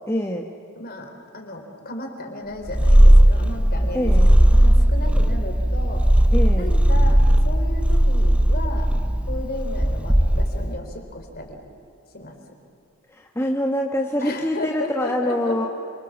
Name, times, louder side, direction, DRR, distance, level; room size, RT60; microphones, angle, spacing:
voice 1, 0.1-0.5 3.9-4.3 6.3-6.7 13.1-15.7, left 1 dB, 10° left, 1 dB, 1.3 m, -25 dB
voice 2, 0.8-6.0 6.6-8.9 9.3-11.6 12.1-12.4 14.2-15.7, left 1 dB, 45° left, 4 dB, 3.7 m, -34 dB
Purr, 2.7-10.8, equal, 5° right, 0.6 m, -16 dB
28.0 x 25.5 x 7.3 m, 2.6 s
head